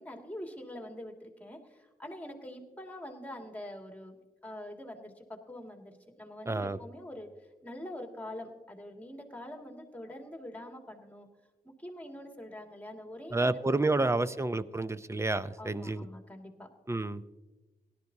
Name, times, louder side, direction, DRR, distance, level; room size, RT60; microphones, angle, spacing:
voice 1, 0.0-4.1 4.4-7.3 7.6-11.3 11.6-14.2 15.6-16.7, left 1 dB, 10° left, 2 dB, 2.2 m, -44 dB
voice 2, 6.5-6.8 13.3-16.1 16.9-17.2, right 2 dB, 15° right, 13 dB, 0.6 m, -29 dB
17.5 x 12.0 x 2.8 m, 1.2 s
cardioid pair, 60°, 16 cm